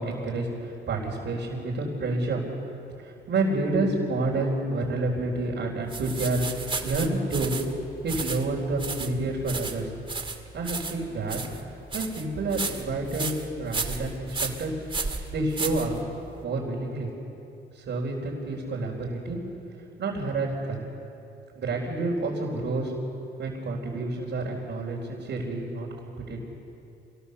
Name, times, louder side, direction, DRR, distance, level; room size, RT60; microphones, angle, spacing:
voice 1, 0.0-2.4 3.0-7.6 8.0-9.9 10.5-11.4 11.9-13.3 13.6-14.7 15.3-16.0 16.4-17.1 17.7-19.4 20.0-20.8 21.5-22.9 23.4-26.4, right 2 dB, 60° right, -5 dB, 4.3 m, -29 dB
sound 1, 5.9-16.4, right 3 dB, 25° right, 2.0 m, -34 dB
26.5 x 19.5 x 7.0 m, 2.8 s
cardioid pair, 90°, 20 cm